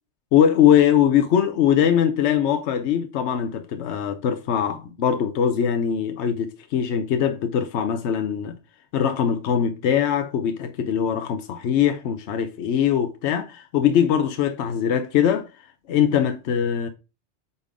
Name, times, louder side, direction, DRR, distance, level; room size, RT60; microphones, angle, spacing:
voice 1, 0.3-8.5 8.9-15.5 15.9-16.9, left 9 dB, 80° left, 1.0 m, -21 dB
8.2 x 3.7 x 3.6 m
omnidirectional pair, 1.2 m